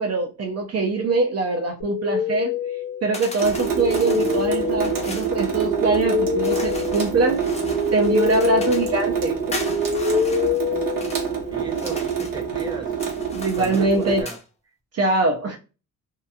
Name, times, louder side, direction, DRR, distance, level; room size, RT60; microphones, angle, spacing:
voice 1, 0.0-2.5 3.0-7.4 7.9-9.7 13.3-14.2 14.9-15.6, right 3 dB, 50° right, 0.5 m, -23 dB
sound 1, 1.8-11.5, left 6 dB, 70° left, 0.6 m, -26 dB
sound 2, 3.1-5.3 6.4-9.0 9.5-11.3 11.7-12.4 12.9-14.4, left 2 dB, 20° left, 0.5 m, -38 dB
Water tap faucet / Sink (filling or washing) / Drip, 3.4-14.2, right 7 dB, 85° right, 1.0 m, -26 dB
voice 2, 11.5-12.9 13.6-14.4, right 4 dB, 15° right, 0.7 m, -35 dB
2.8 x 2.5 x 2.2 m
wide cardioid pair, 170°, 33 cm